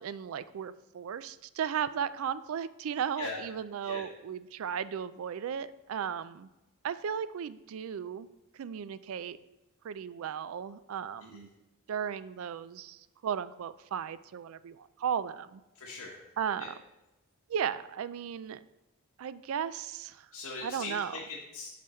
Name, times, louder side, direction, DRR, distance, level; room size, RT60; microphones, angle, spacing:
voice 1, 0.0-6.5 6.8-8.3 8.6-9.4 9.8-11.5 11.9-15.6 16.4-16.7 17.5-18.6 19.2-20.3 20.6-21.2, right 8 dB, 65° right, 15 dB, 0.3 m, -35 dB
voice 2, 15.7-16.2 16.6-16.7 20.3-21.7, left 3 dB, 80° left, -4 dB, 1.3 m, -41 dB
6.6 x 5.5 x 4.3 m, 1.0 s
head